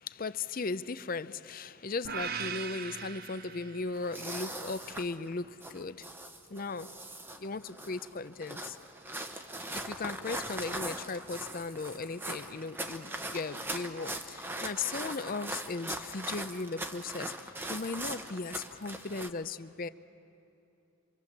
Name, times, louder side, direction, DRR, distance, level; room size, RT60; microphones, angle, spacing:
voice 1, 0.0-6.0 6.5-6.9 7.4-8.8 9.7-19.9, left 4 dB, 40° left, 0.6 m, -37 dB
sound 1, 2.0-4.3, right 6 dB, 45° right, 0.6 m, -39 dB
sound 2, 3.9-19.3, right 1 dB, 10° right, 0.9 m, -40 dB
27.0 x 24.5 x 7.3 m
head